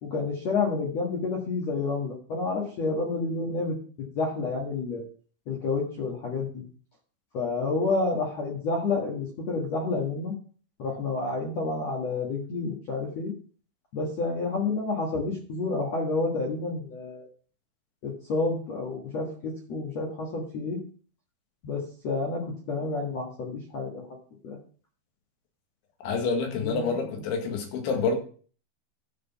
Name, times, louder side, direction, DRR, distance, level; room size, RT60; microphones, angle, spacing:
voice 1, 0.0-5.0 5.5-6.6 7.3-10.4 10.8-13.3 13.9-17.3 18.0-20.8 21.6-22.4 22.7-24.2 24.4-24.6 26.6-26.8, left 3 dB, 55° left, -1 dB, 1.9 m, -29 dB
voice 2, 26.0-28.2, left 4 dB, 85° left, 3 dB, 4.3 m, -27 dB
12.5 x 5.1 x 5.7 m, 0.42 s
omnidirectional pair, 5.3 m